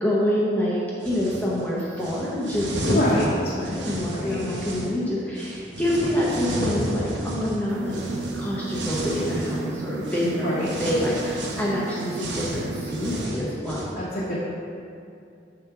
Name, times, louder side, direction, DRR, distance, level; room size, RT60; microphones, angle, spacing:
voice 1, 0.0-8.0 8.4-14.0, left 1 dB, 10° left, -6 dB, 0.7 m, -26 dB
sound 1, 1.0-1.5 2.0-4.9 5.4-9.7 10.0-10.3 10.6-13.8, right 1 dB, 85° right, 1.0 m, -32 dB
voice 2, 2.9-3.3 4.1-4.4 10.3-10.7 14.0-14.4, left 1 dB, 45° left, -8 dB, 0.9 m, -26 dB
sound 2, 7.7-13.3, right 3 dB, 70° right, 0.4 m, -34 dB
7.0 x 2.9 x 5.8 m, 2.5 s
head